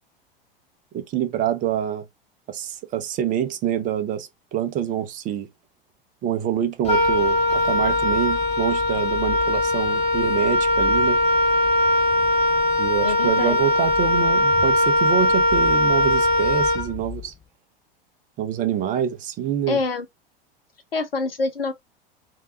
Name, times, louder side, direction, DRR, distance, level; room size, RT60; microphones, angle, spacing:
voice 1, 0.9-2.1 2.5-5.5 6.2-11.2 12.8-17.3 18.4-19.8, right 10 dB, 30° right, 0.6 m, -26 dB
Wind instrument woodwind instrument, 6.8-17.3, left 1 dB, 20° left, 0.8 m, -20 dB
voice 2, 13.0-13.6 19.7-20.1 20.9-21.7, left 3 dB, 80° left, 0.8 m, -26 dB
3.3 x 2.6 x 2.7 m
figure-of-eight pair, 85°, 29 cm